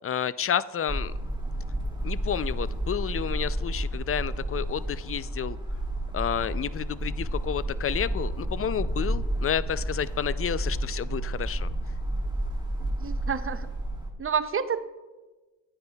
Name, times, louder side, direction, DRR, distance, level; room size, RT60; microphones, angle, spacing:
voice 1, 0.0-1.1 2.0-5.6 6.1-11.7, left 9 dB, 45° left, 17 dB, 0.4 m, -30 dB
sound 1, 0.9-14.1, right 1 dB, 15° right, 1.7 m, -31 dB
voice 2, 13.0-13.7 14.2-14.8, right 6 dB, 40° right, 12 dB, 0.6 m, -28 dB
11.0 x 9.4 x 2.3 m, 1.2 s
supercardioid pair, 45°, 33 cm